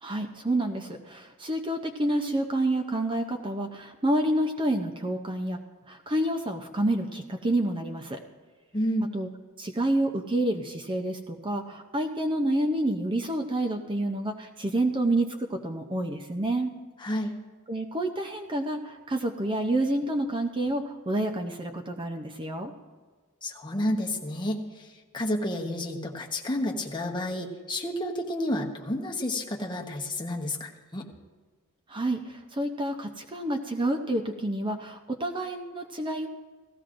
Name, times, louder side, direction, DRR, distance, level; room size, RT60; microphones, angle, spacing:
voice 1, 0.0-5.6 5.9-8.2 9.1-9.3 9.6-16.7 17.7-22.7 31.9-36.3, right 1 dB, 25° right, 5 dB, 0.6 m, -28 dB
voice 2, 8.7-9.1 17.0-17.3 23.4-24.9 25.1-31.0, left 1 dB, 20° left, 0 dB, 1.1 m, -30 dB
17.0 x 14.5 x 2.6 m, 1.4 s
head